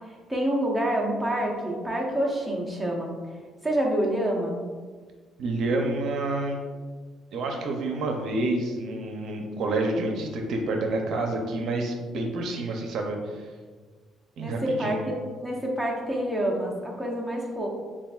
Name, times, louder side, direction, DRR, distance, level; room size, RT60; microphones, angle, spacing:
voice 1, 0.3-3.1 3.6-4.6 14.4-17.7, right 1 dB, ahead, -3 dB, 0.8 m, -27 dB
voice 2, 5.4-6.6 7.3-13.4 14.4-15.0, right 2 dB, 65° right, 2 dB, 0.5 m, -28 dB
6.9 x 2.5 x 2.4 m, 1.5 s
cardioid pair, 120°, 0 cm